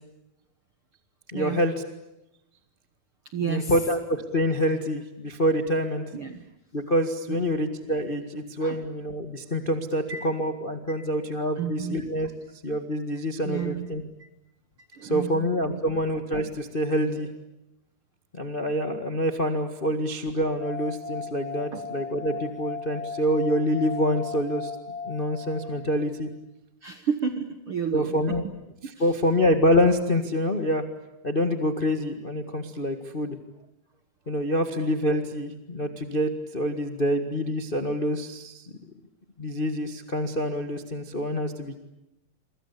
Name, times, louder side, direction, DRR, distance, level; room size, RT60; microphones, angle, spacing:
voice 1, 1.3-1.7 3.5-6.0 6.7-12.3 12.6-14.0 15.0-17.3 18.3-24.7 25.0-26.3 27.9-28.4 29.0-30.8 31.2-33.4 34.3-38.6 39.4-41.8, equal, 65° left, 6 dB, 0.5 m, -26 dB
voice 2, 3.3-3.8 6.1-6.5 7.3-7.5 8.6-8.8 10.1-10.3 11.0-11.1 11.6-12.0 13.4-14.3 14.8-16.0 21.7-21.9 26.8-28.4 29.0-29.1, right 7 dB, 70° right, 8 dB, 1.2 m, -32 dB
sound 1, 20.6-26.1, left 4 dB, 40° left, 1.4 m, -37 dB
28.0 x 25.0 x 8.5 m, 0.90 s
omnidirectional pair, 4.5 m